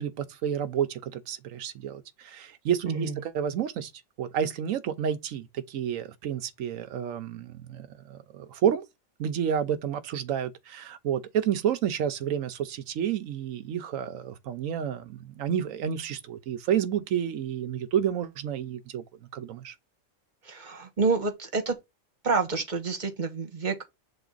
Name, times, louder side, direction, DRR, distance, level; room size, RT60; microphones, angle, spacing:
voice 1, 0.0-3.9 4.2-8.9 9.2-19.0 19.3-19.7, right 9 dB, 85° right, 1.1 m, -30 dB
voice 2, 2.8-3.1 20.4-21.8 22.2-23.8, right 4 dB, 40° right, 1.3 m, -28 dB
7.0 x 3.8 x 3.9 m
omnidirectional pair, 1.3 m